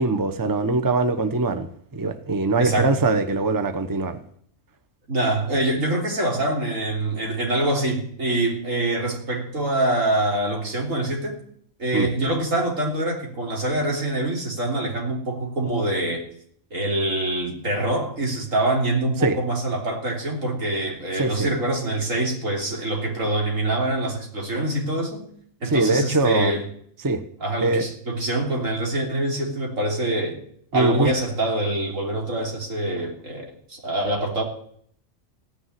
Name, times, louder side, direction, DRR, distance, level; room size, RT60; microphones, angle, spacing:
voice 1, 0.0-1.7 1.9-4.2 11.9-12.1 19.2-19.4 21.2-21.5 25.7-26.5 27.0-27.2 27.6-27.9 30.7-31.1, right 3 dB, 20° right, 0.9 m, -22 dB
voice 2, 2.6-3.0 5.1-11.4 11.8-16.2 16.7-25.3 25.6-26.6 27.4-30.4 30.7-34.4, right 1 dB, 85° right, 3.8 m, -25 dB
16.0 x 7.0 x 9.6 m
omnidirectional pair, 1.3 m